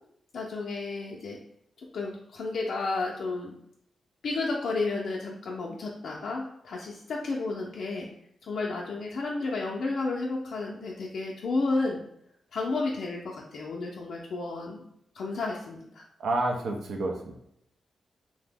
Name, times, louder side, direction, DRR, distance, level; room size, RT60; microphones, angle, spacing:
voice 1, 0.3-1.4 1.9-3.5 4.2-8.1 8.4-12.0 12.5-14.9 15.1-16.1, left 3 dB, 70° left, -2 dB, 0.4 m, -32 dB
voice 2, 16.2-17.3, right 2 dB, 80° right, 2 dB, 0.5 m, -29 dB
2.8 x 2.0 x 3.3 m, 0.73 s
wide cardioid pair, 115°, 0 cm